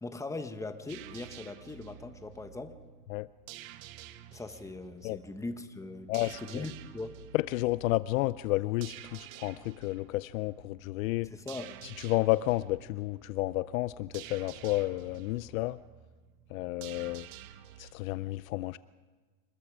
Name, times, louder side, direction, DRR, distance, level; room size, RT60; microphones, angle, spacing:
voice 1, 0.0-2.8 4.3-7.2 11.3-11.7, left 2 dB, 5° left, 8 dB, 1.3 m, -40 dB
sound 1, 0.9-17.9, right 12 dB, 60° right, 1.4 m, -50 dB
voice 2, 6.1-6.6 7.3-11.3 12.0-15.8 16.5-17.3 17.8-18.8, left 19 dB, 60° left, 17 dB, 0.6 m, -31 dB
27.0 x 20.5 x 5.0 m, 1.4 s
hypercardioid pair, 120°, 48 cm